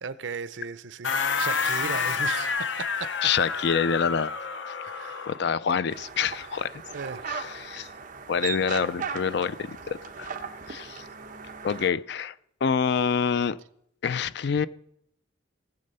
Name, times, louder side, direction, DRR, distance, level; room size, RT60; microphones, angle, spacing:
voice 1, 0.0-3.2 4.8-5.3 6.9-7.3, right 6 dB, 80° right, 0.6 m, -36 dB
sound 1, 1.0-5.5, left 5 dB, 80° left, 0.9 m, -29 dB
voice 2, 3.2-4.3 5.3-6.7 7.3-7.9 8.3-10.3 10.7-11.0 11.6-12.3 12.6-13.6 14.0-14.7, left 6 dB, 65° left, 0.4 m, -26 dB
sound 2, 5.9-11.9, right 6 dB, 45° right, 1.0 m, -38 dB
17.0 x 7.6 x 5.5 m
head